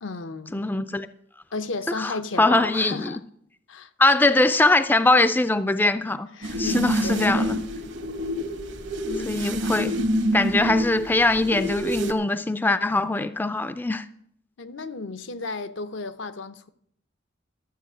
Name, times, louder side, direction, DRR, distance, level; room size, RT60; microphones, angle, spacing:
voice 1, 0.0-0.6 1.5-3.2 3.7-3.9 6.4-7.5 9.1-9.4 14.6-16.7, left 3 dB, 80° left, 0.7 m, -34 dB
voice 2, 0.5-1.1 2.0-3.2 4.0-7.6 9.3-9.9 10.3-14.1, left 2 dB, 10° left, 0.3 m, -22 dB
sound 1, 6.4-12.1, right 1 dB, 70° right, 1.1 m, -27 dB
12.5 x 7.4 x 6.1 m
head